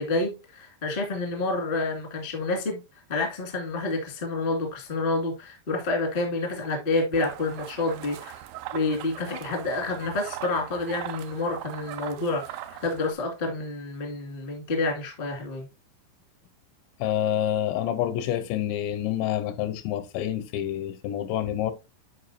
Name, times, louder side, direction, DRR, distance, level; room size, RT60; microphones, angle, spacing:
voice 1, 0.0-2.8 3.1-8.4 8.7-15.7, left 2 dB, 50° left, 0.6 m, -28 dB
sound 1, 7.1-13.1, right 13 dB, 90° right, 3.0 m, -40 dB
voice 2, 17.0-21.7, left 11 dB, 85° left, 3.0 m, -27 dB
10.5 x 4.8 x 2.7 m
omnidirectional pair, 5.3 m